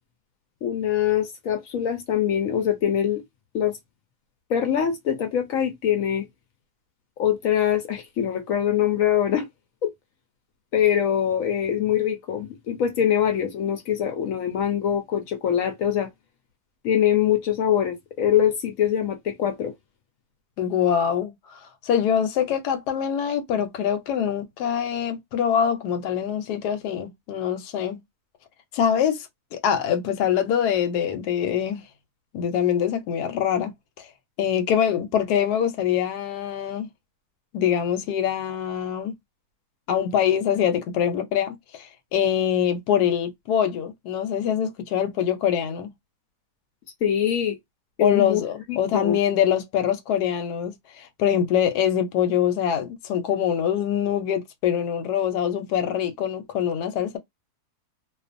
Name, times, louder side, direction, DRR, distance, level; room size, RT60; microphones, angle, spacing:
voice 1, 0.6-3.2 3.5-3.8 4.5-6.3 7.2-9.5 9.8-9.9 10.7-16.1 16.8-19.7 47.0-47.6 48.0-48.4 48.7-49.2, left 9 dB, 70° left, 0.9 m, -23 dB
voice 2, 20.6-28.0 28.7-31.8 32.3-34.1 34.4-36.9 37.5-39.1 39.9-45.9 48.0-57.2, left 9 dB, 85° left, 1.2 m, -24 dB
2.4 x 2.4 x 2.5 m
omnidirectional pair, 1.7 m